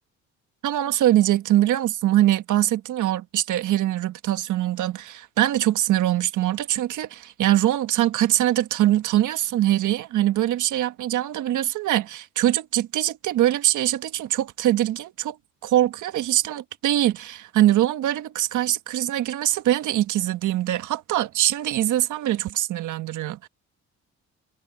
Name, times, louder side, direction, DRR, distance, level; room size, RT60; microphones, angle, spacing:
voice 1, 0.6-15.4 15.6-23.5, right 13 dB, 80° right, 1.4 m, -23 dB
cardioid pair, 90°, 30 cm